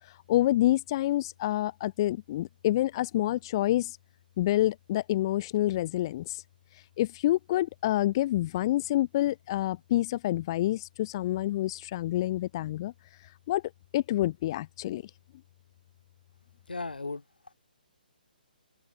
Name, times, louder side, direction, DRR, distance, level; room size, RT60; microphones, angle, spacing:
voice 1, 0.0-4.0 4.4-6.4 6.7-12.9 13.2-13.6 13.9-15.1, left 15 dB, 30° left, 0.5 m, -28 dB
voice 2, 16.7-17.5, left 3 dB, 70° left, 2.3 m, -37 dB
open air
figure-of-eight pair, 135°, 5 cm